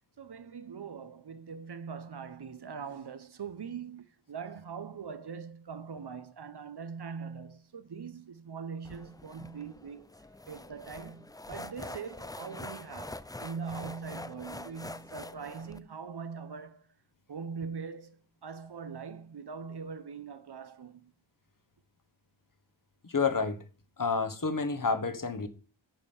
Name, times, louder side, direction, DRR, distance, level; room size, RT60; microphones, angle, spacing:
voice 1, 0.2-10.1 10.5-16.9 17.3-21.1, right 6 dB, 55° right, 0.8 m, -42 dB
sound 1, 8.8-15.8, left 2 dB, 10° left, 0.4 m, -44 dB
voice 2, 23.0-23.6 24.0-25.5, left 4 dB, 40° left, 1.3 m, -29 dB
9.1 x 5.1 x 7.1 m
wide cardioid pair, 85°, 48 cm